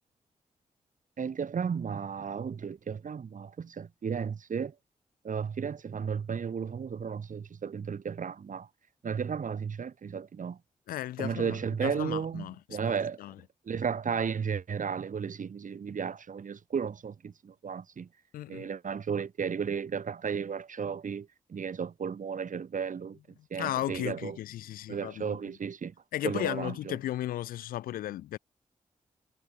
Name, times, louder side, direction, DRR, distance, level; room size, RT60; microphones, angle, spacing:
voice 1, 1.2-4.7 5.2-8.7 9.0-10.6 11.2-13.2 13.7-18.1 18.5-23.2 23.5-24.4 24.9-25.9 26.2-26.9, right 6 dB, 65° right, 6.6 m, -34 dB
voice 2, 10.9-12.6 13.2-13.4 18.3-18.7 23.6-25.4 26.1-28.4, left 13 dB, 90° left, 6.3 m, -35 dB
supercardioid pair, 40°, 14 cm